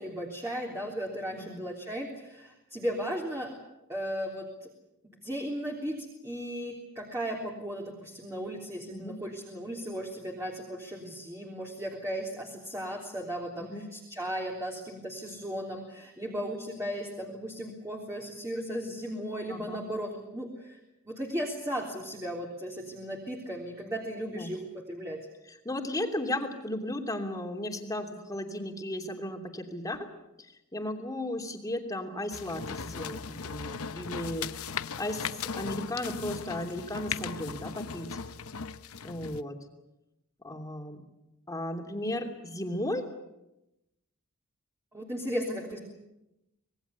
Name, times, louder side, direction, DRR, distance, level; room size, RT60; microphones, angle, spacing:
voice 1, 0.0-3.5 3.9-4.7 5.2-20.8 21.1-25.3 44.9-45.8, equal, 15° right, -1 dB, 3.5 m, -36 dB
voice 2, 19.5-19.8 24.3-24.5 25.5-30.1 30.7-34.5 35.0-38.1 39.0-39.6 40.4-41.0 41.5-43.1, left 1 dB, 15° left, 4 dB, 3.0 m, -35 dB
sound 1, 32.3-39.4, left 6 dB, 70° left, 0.8 m, -37 dB
26.0 x 19.5 x 8.4 m, 0.92 s
head